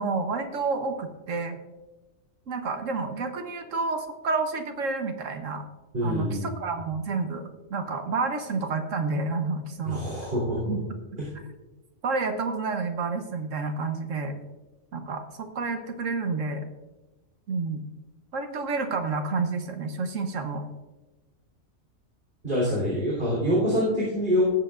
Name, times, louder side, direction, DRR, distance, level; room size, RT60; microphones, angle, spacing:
voice 1, 0.0-1.6 2.5-5.6 6.0-10.0 10.6-10.8 12.0-14.3 14.9-16.6 17.5-17.8 18.3-20.6 23.6-23.7, right 4 dB, 75° right, 6 dB, 1.4 m, -29 dB
voice 2, 5.9-6.5 9.8-10.6 11.2-11.3 22.4-24.5, equal, 45° right, -7 dB, 3.8 m, -25 dB
18.5 x 7.9 x 2.5 m, 1.1 s
omnidirectional pair, 1.4 m